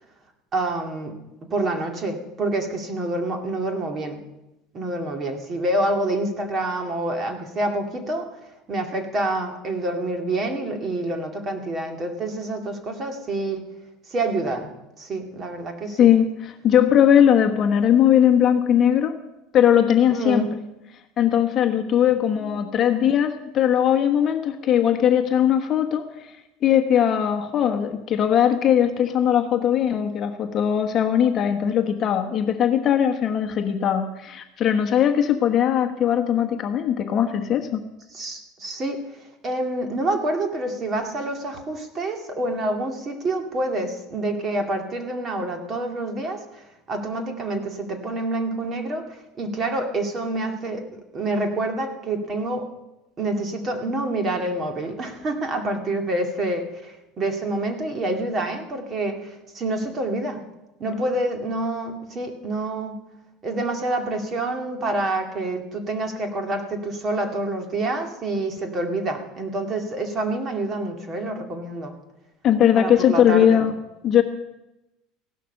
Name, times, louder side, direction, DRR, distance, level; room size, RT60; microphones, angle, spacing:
voice 1, 0.5-1.2 1.5-4.2 4.7-8.3 8.7-13.6 14.1-14.7 15.0-16.1 20.1-20.5 22.4-22.6 38.1-39.0 39.4-49.1 49.4-52.7 53.2-60.4 60.8-63.0 63.4-71.9 72.8-73.6, right 2 dB, 25° right, 4 dB, 2.1 m, -27 dB
voice 2, 16.0-19.2 19.5-20.5 21.2-26.3 26.6-37.8 72.4-73.7 74.0-74.2, left 9 dB, 35° left, 6 dB, 1.2 m, -19 dB
16.0 x 12.0 x 6.6 m, 0.95 s
cardioid pair, 150°, 0 cm